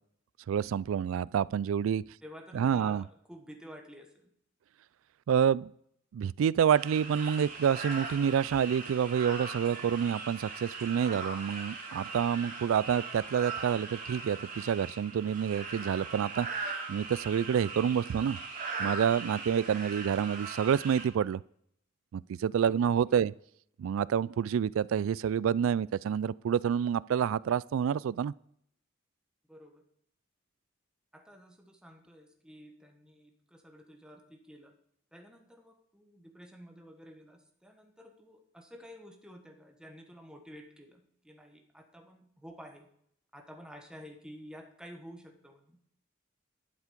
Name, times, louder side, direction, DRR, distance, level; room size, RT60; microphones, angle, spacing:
voice 1, 0.5-2.0 2.5-3.0 5.3-5.7 6.1-18.4 18.8-21.4 22.1-23.3 23.8-28.3, right 8 dB, 80° right, 0.3 m, -28 dB
voice 2, 2.2-4.3 22.7-23.2 29.5-29.8 31.1-34.7 35.1-42.9 43.3-45.8, equal, 5° right, 1.3 m, -51 dB
sound 1, 6.7-21.1, right 4 dB, 40° right, 2.8 m, -40 dB
12.0 x 7.4 x 5.1 m
head